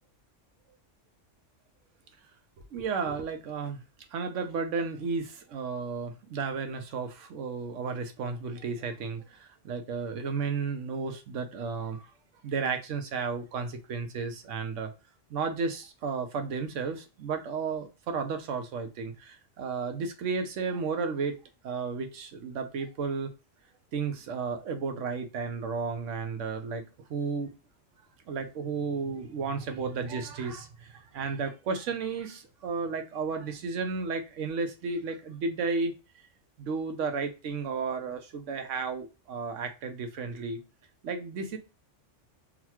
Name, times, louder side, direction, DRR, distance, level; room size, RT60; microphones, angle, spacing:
voice 1, 2.7-3.8 4.1-12.1 12.4-14.9 15.3-21.4 21.6-23.3 23.9-26.8 27.1-27.5 28.3-35.9 36.6-40.6 41.0-41.6, right 5 dB, 80° right, 1.0 m, -33 dB
3.9 x 2.3 x 2.9 m
omnidirectional pair, 1.3 m